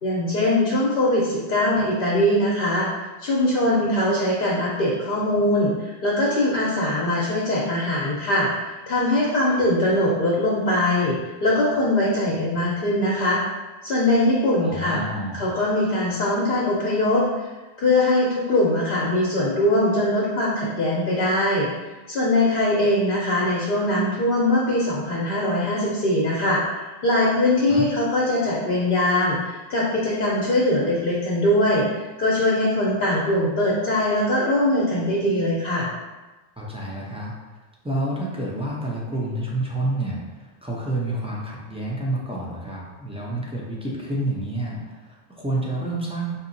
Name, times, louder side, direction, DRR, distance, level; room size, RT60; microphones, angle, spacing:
voice 1, 0.0-2.9 3.2-13.4 13.8-15.0 15.3-17.5 17.8-21.7 22.1-31.9 32.2-35.9, left 1 dB, 65° left, -5 dB, 0.9 m, -21 dB
voice 2, 14.6-15.5 27.7-27.9 36.6-37.3 37.8-46.4, right 1 dB, 10° right, -4 dB, 0.4 m, -29 dB
4.1 x 2.8 x 2.6 m, 1.2 s
omnidirectional pair, 1.1 m